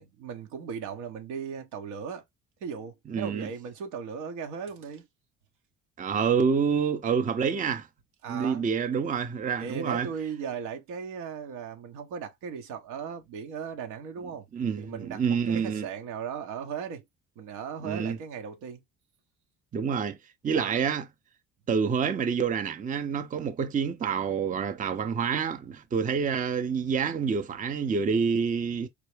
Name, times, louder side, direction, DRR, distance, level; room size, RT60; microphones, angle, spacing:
voice 1, 0.0-2.2 2.6-5.1 8.2-8.7 9.6-14.5 14.8-17.0 17.4-18.8 20.5-20.8, right 6 dB, 80° right, 1.2 m, -37 dB
voice 2, 3.1-3.5 6.0-7.9 8.3-10.1 14.5-15.9 17.8-18.2 19.7-20.2 20.4-21.1 21.7-28.9, right 6 dB, 25° right, 0.6 m, -27 dB
4.7 x 2.1 x 3.2 m
supercardioid pair, 75°, 32 cm